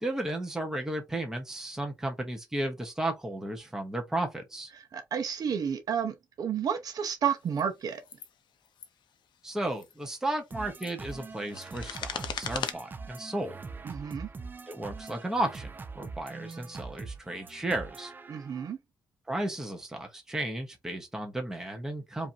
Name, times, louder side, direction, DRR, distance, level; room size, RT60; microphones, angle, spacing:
voice 1, 0.0-4.7 9.4-13.6 14.7-15.7 15.9-18.1 19.3-22.3, right 1 dB, 5° right, 1.0 m, -34 dB
voice 2, 4.9-8.0 13.8-14.3 18.3-18.8, right 7 dB, 55° right, 0.8 m, -31 dB
sound 1, 7.5-7.6 8.0-8.3 8.6-8.9 9.7-9.9 10.5-12.7, left 8 dB, 90° left, 0.7 m, -38 dB
sound 2, 10.5-18.7, right 4 dB, 25° right, 0.5 m, -43 dB
5.0 x 2.6 x 2.8 m
wide cardioid pair, 180°, 8 cm